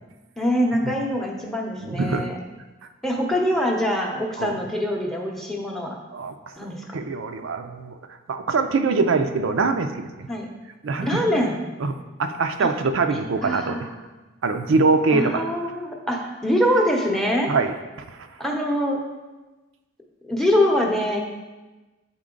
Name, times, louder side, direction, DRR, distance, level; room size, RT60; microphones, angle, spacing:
voice 1, 0.4-2.4 3.0-6.0 6.6-6.8 10.3-10.5 11.0-11.6 12.6-12.7 13.1-13.9 15.1-17.5 18.4-19.0 20.3-21.2, equal, ahead, 0 dB, 0.7 m, -24 dB
voice 2, 1.8-2.3 4.4-4.5 6.1-6.3 6.9-8.0 8.3-10.3 10.8-11.5 11.8-13.8 14.4-15.4 17.5-17.7 18.1-18.3, right 4 dB, 70° right, 7 dB, 0.4 m, -23 dB
8.7 x 4.2 x 3.8 m, 1.2 s
head